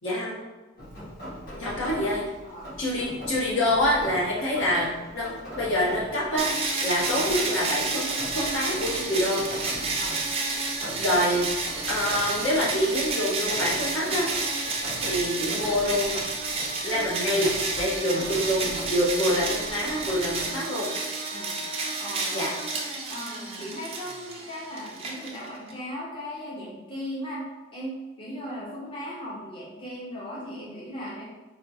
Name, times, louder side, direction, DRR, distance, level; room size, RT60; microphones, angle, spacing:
voice 1, 0.0-0.4 1.6-2.2 2.8-6.5 6.8-9.4 11.0-11.5 11.9-14.3 15.0-16.2 16.8-20.9 22.3-22.5, equal, 85° left, -6 dB, 1.1 m, -26 dB
Rain, 0.8-20.6, equal, 45° left, 0.9 m, -41 dB
sound 1, 6.4-25.7, right 3 dB, 30° right, 0.4 m, -30 dB
voice 2, 21.3-21.6 22.0-22.5 23.1-31.2, equal, 25° left, -6 dB, 0.6 m, -37 dB
4.1 x 2.2 x 2.7 m, 1.2 s
head